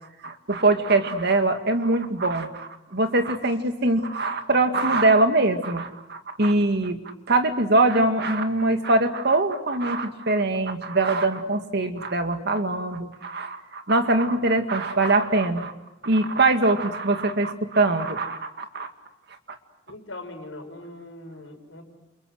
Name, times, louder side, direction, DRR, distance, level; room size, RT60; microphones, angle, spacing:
voice 1, 0.2-7.0 7.3-15.7 16.0-18.9, right 2 dB, 60° right, 7 dB, 2.1 m, -22 dB
voice 2, 19.9-21.8, left 2 dB, 85° left, 5 dB, 5.3 m, -40 dB
29.5 x 28.5 x 6.5 m, 0.95 s
head